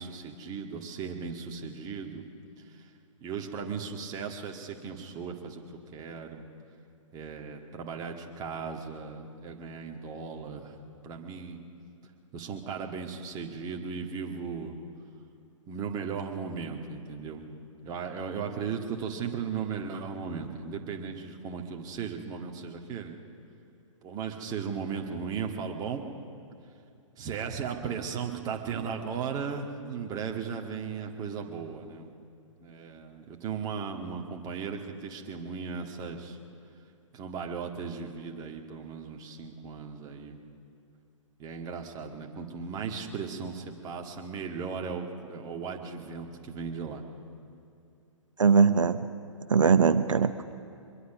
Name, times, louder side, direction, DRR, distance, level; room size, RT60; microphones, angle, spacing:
voice 1, 0.0-2.3 2.8-2.9 3.2-5.6 5.9-6.5 7.1-10.8 11.0-11.6 12.3-14.8 15.7-17.5 17.8-23.2 24.0-26.1 27.2-32.1 32.6-36.4 37.1-40.4 41.4-47.0, right 6 dB, 20° right, 3 dB, 1.8 m, -36 dB
voice 2, 48.4-49.1 49.5-50.5, right 5 dB, 75° right, 12 dB, 0.7 m, -21 dB
23.5 x 22.0 x 6.0 m, 2.6 s
figure-of-eight pair, 125°, 17 cm